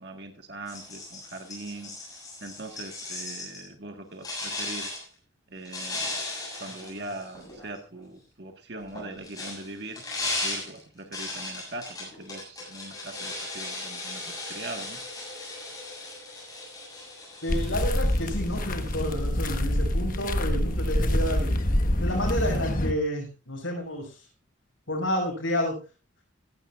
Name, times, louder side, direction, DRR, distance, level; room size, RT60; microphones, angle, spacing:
voice 1, 0.0-1.9 2.4-4.9 5.5-6.2 6.6-10.0 10.4-15.0, right 2 dB, 55° right, 4 dB, 1.6 m, -41 dB
sound 1, 0.7-3.7 4.2-5.0 5.6-7.8 8.8-19.2, left 2 dB, 20° left, 7.6 m, -37 dB
voice 2, 17.4-21.6 22.0-24.2 24.9-25.8, equal, 75° left, -5 dB, 6.1 m, -30 dB
sound 2, 17.5-22.9, left 1 dB, 45° left, 1.3 m, -26 dB
16.5 x 15.0 x 2.4 m, 0.33 s
head